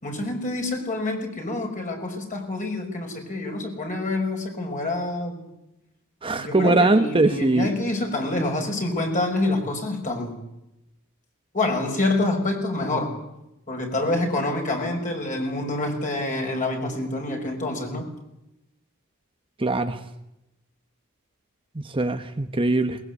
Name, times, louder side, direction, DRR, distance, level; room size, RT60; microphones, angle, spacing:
voice 1, 0.0-5.5 6.3-10.4 11.5-13.1 13.7-18.0, left 2 dB, 35° left, 2 dB, 6.0 m, -27 dB
voice 2, 6.2-7.7 19.6-20.0 21.9-23.0, right 2 dB, 25° right, 7 dB, 1.1 m, -21 dB
21.5 x 20.5 x 8.4 m, 0.89 s
head